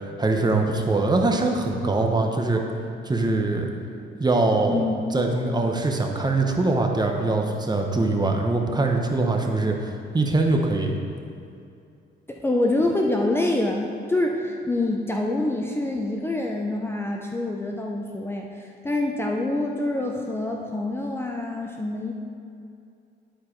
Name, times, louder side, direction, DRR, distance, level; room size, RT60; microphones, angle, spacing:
voice 1, 0.2-2.6 3.1-3.7 4.2-4.8 5.1-11.0, right 2 dB, 20° right, 2 dB, 0.9 m, -23 dB
voice 2, 4.7-5.2 12.3-22.1, left 2 dB, 10° left, 0 dB, 0.6 m, -26 dB
11.0 x 4.6 x 4.5 m, 2.5 s
cardioid pair, 90°, 20 cm